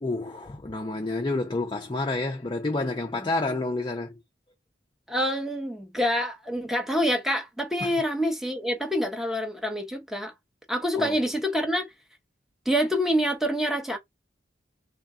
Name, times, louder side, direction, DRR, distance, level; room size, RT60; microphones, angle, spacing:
voice 1, 0.0-4.2 7.8-7.9 11.0-11.2, left 2 dB, 25° left, 0.5 m, -29 dB
voice 2, 5.1-10.3 10.7-11.9 12.7-14.0, equal, ahead, 0.8 m, -26 dB
3.5 x 2.3 x 3.5 m
head